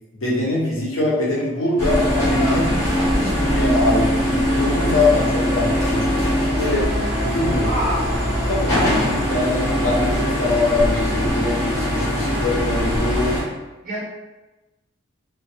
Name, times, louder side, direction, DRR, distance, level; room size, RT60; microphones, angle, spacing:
voice 1, 0.2-2.7 3.2-6.1 6.4-6.9 7.2-7.8 8.5-8.7 9.3-13.4, left 2 dB, 85° left, -5 dB, 0.7 m, -23 dB
sound 1, 1.8-13.4, equal, 15° left, 0.9 m, -21 dB
voice 2, 7.6-8.0 13.8-14.0, equal, 45° right, -5 dB, 0.8 m, -25 dB
2.2 x 2.2 x 2.6 m, 1.1 s
head